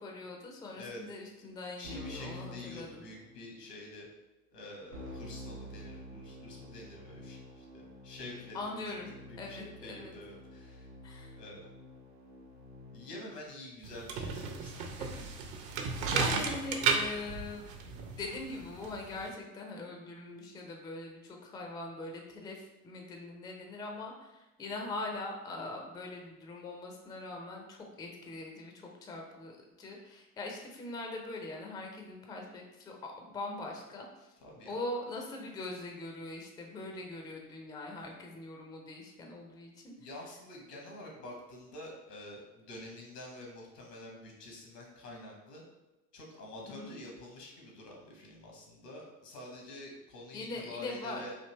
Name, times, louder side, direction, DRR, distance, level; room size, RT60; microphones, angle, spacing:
voice 1, 0.0-3.1 8.5-9.1 9.4-10.2 11.0-11.4 14.8-15.2 15.7-15.8 16.1-17.7 18.2-34.3 34.7-39.9 46.6-47.0 50.3-51.2, left 2 dB, 10° left, 1 dB, 0.4 m, -42 dB
voice 2, 1.8-4.1 4.5-8.7 9.1-10.9 11.3-11.7 12.9-14.8 15.2-15.3 34.4-34.8 40.0-45.6 46.1-51.3, left 1 dB, 80° left, -1 dB, 1.2 m, -47 dB
Keyboard (musical), 1.8-3.5 4.9-13.3, left 1 dB, 85° right, 1.0 m, -48 dB
sound 1, 13.8-19.3, right 5 dB, 50° right, 0.6 m, -34 dB
3.4 x 2.6 x 3.1 m, 1.0 s
figure-of-eight pair, 70°, 47 cm